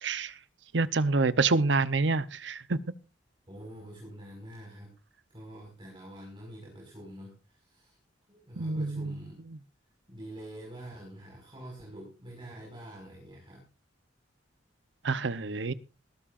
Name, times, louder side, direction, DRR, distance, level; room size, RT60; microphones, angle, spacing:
voice 1, 0.0-0.3 0.7-2.8 8.6-9.2 15.0-15.7, right 3 dB, 75° right, 0.8 m, -27 dB
voice 2, 3.5-5.0 5.3-8.0 8.3-9.4 10.1-13.6, right 1 dB, 30° right, 5.6 m, -46 dB
20.0 x 13.5 x 2.6 m
head